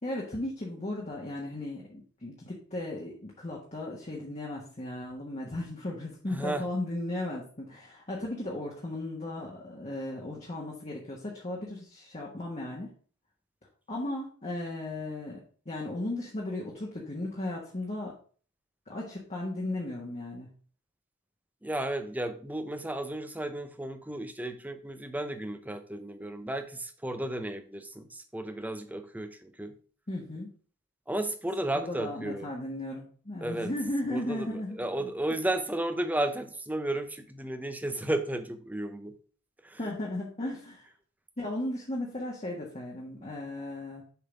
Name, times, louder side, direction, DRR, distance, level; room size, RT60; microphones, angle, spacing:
voice 1, 0.0-12.9 13.9-15.4 15.6-18.1 18.9-20.5 30.1-30.5 31.7-35.1 39.8-40.8 41.4-44.0, left 1 dB, 30° left, -3 dB, 1.3 m, -36 dB
voice 2, 6.3-6.6 21.6-29.7 31.1-32.5 33.4-33.7 34.1-39.1 39.6-39.8, right 1 dB, 5° right, 7 dB, 0.6 m, -33 dB
6.9 x 3.8 x 5.1 m, 0.43 s
head